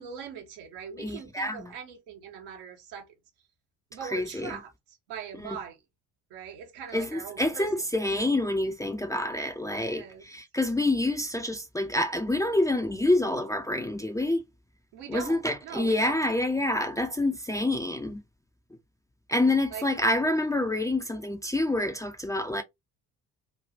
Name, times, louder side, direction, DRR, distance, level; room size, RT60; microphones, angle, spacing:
voice 1, 0.0-3.1 3.9-5.8 6.3-7.8 9.8-10.3 14.9-16.2 16.8-16.9 19.7-19.9, right 8 dB, 65° right, 1.0 m, -41 dB
voice 2, 1.0-1.7 4.0-4.6 5.4-5.6 6.9-14.5 15.1-18.2 19.3-22.6, left 1 dB, 10° left, 0.5 m, -27 dB
3.4 x 2.3 x 2.7 m
figure-of-eight pair, 50°, 43 cm